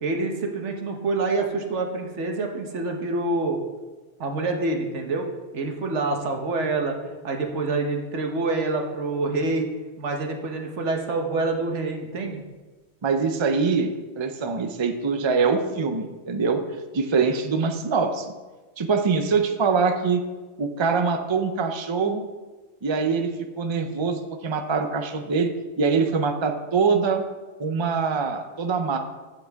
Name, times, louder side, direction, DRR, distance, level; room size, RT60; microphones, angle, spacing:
voice 1, 0.0-3.6 4.2-5.2 5.5-9.7 10.0-12.4, right 3 dB, 75° right, 3 dB, 1.4 m, -26 dB
voice 2, 13.0-16.6 16.9-18.3 18.8-20.2 20.6-22.3 22.8-23.3 23.6-25.5 25.8-27.2 27.6-29.0, right 5 dB, 30° right, 6 dB, 0.6 m, -23 dB
11.5 x 7.8 x 3.5 m, 1.3 s
omnidirectional pair, 1.2 m